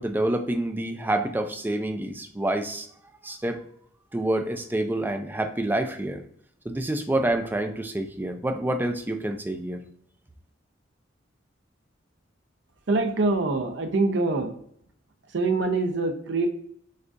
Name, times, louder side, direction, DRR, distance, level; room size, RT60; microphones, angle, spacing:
voice 1, 0.0-2.9 3.2-3.6 4.1-6.2 6.7-9.8, right 1 dB, 10° right, 6 dB, 0.4 m, -27 dB
voice 2, 12.9-14.5 15.3-16.5, right 3 dB, 65° right, 6 dB, 0.6 m, -24 dB
6.4 x 2.4 x 2.5 m, 0.65 s
head